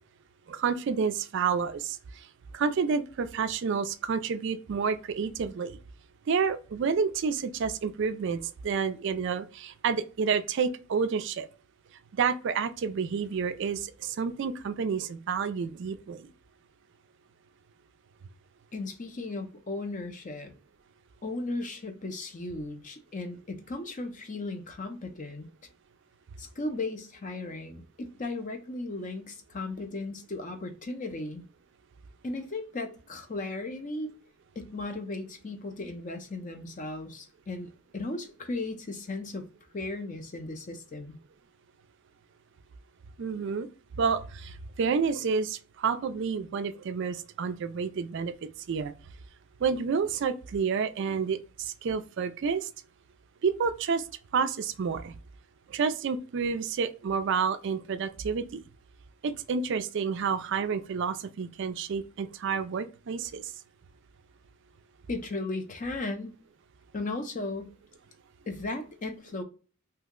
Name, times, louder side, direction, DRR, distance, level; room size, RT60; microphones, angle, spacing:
voice 1, 0.5-2.0 2.5-5.8 6.3-11.5 12.1-16.3 43.2-43.7 44.0-48.3 48.7-48.9 49.6-52.7 53.4-54.0 54.3-55.1 55.7-58.6 59.2-63.5, right 5 dB, 55° right, 0.3 m, -29 dB
voice 2, 18.7-20.5 21.2-25.5 26.4-31.4 32.2-34.1 34.6-39.5 39.7-41.2 65.1-66.3 66.9-67.7 68.5-69.4, left 2 dB, 35° left, 0.5 m, -36 dB
2.8 x 2.0 x 3.6 m
head